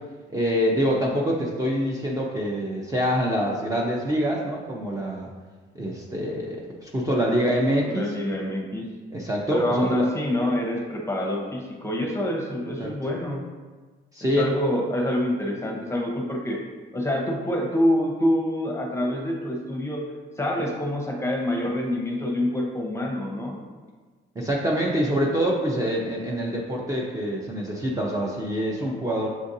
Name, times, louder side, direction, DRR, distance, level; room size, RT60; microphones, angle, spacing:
voice 1, 0.3-5.3 5.7-8.1 9.1-10.1 12.8-12.9 14.1-14.5 24.4-29.3, equal, 15° right, -3 dB, 0.6 m, -25 dB
voice 2, 7.9-8.9 9.5-13.4 14.4-16.6 16.9-20.1 20.4-23.6, left 1 dB, 15° left, 0 dB, 0.8 m, -26 dB
7.1 x 2.5 x 2.7 m, 1.4 s
cardioid pair, 90°, 20 cm